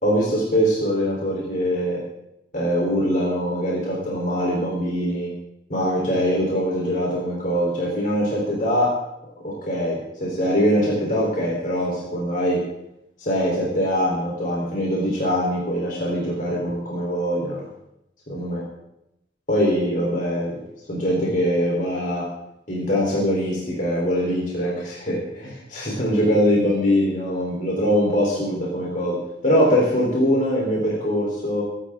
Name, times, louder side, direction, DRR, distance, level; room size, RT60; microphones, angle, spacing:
voice 1, 0.0-2.0 2.5-5.3 5.7-8.9 9.4-12.6 13.2-17.6 18.3-18.6 19.5-20.6 20.9-22.3 22.7-29.2 29.4-31.6, equal, 45° left, -4 dB, 3.9 m, -22 dB
25.0 x 11.5 x 3.8 m, 0.84 s
head